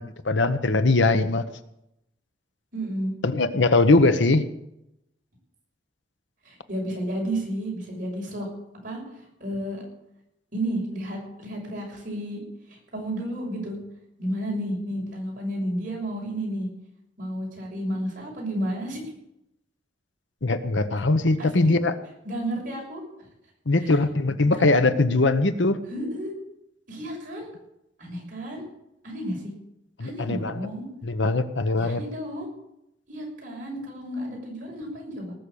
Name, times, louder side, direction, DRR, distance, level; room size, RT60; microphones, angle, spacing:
voice 1, 0.0-1.4 3.2-4.4 20.4-21.9 23.7-25.8 30.0-30.6 31.0-32.0, left 2 dB, 85° left, 11 dB, 1.0 m, -21 dB
voice 2, 2.7-3.1 6.4-8.5 8.8-9.0 9.4-9.8 10.5-12.4 12.7-13.8 14.2-16.7 17.2-19.0 21.4-21.7 22.2-23.0 24.5-24.8 25.9-26.3 26.9-27.5 28.0-28.6 29.0-29.4 30.0-30.9 31.8-32.5 33.1-35.3, right 1 dB, 45° right, -2 dB, 6.5 m, -32 dB
19.0 x 6.6 x 8.7 m, 0.85 s
head